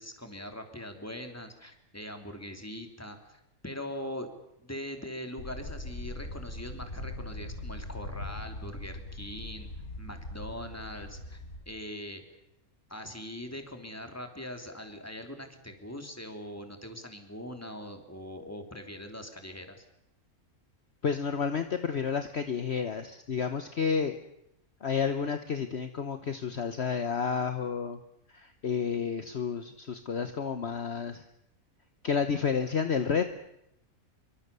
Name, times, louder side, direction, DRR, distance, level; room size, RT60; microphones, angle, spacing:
voice 1, 0.0-4.3 4.6-9.7 10.0-12.2 12.9-19.9, left 1 dB, 10° left, 6 dB, 3.1 m, -42 dB
sound 1, 5.4-11.6, left 1 dB, 75° left, 4.6 m, -41 dB
voice 2, 21.0-24.2 24.8-28.0 28.3-31.2 32.0-33.2, left 6 dB, 50° left, 8 dB, 1.3 m, -30 dB
25.5 x 24.0 x 6.9 m, 0.82 s
omnidirectional pair, 1.5 m